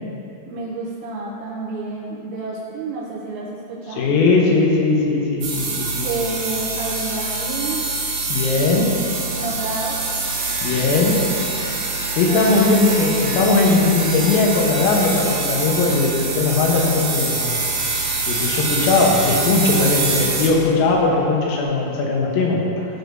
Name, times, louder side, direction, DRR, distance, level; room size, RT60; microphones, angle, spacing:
voice 1, 0.5-4.1 6.0-7.8 9.3-10.0 12.2-12.8, right 3 dB, 80° right, -4 dB, 2.7 m, -29 dB
voice 2, 4.0-6.1 8.3-9.0 10.6-11.2 12.2-17.6 18.3-22.9, left 3 dB, 85° left, -2 dB, 3.8 m, -19 dB
sound 1, 5.4-20.5, right 3 dB, 60° right, 2.5 m, -25 dB
Domestic sounds home sounds, 9.2-21.6, equal, 65° left, 4.3 m, -38 dB
16.0 x 6.6 x 2.7 m, 2.8 s
omnidirectional pair, 5.9 m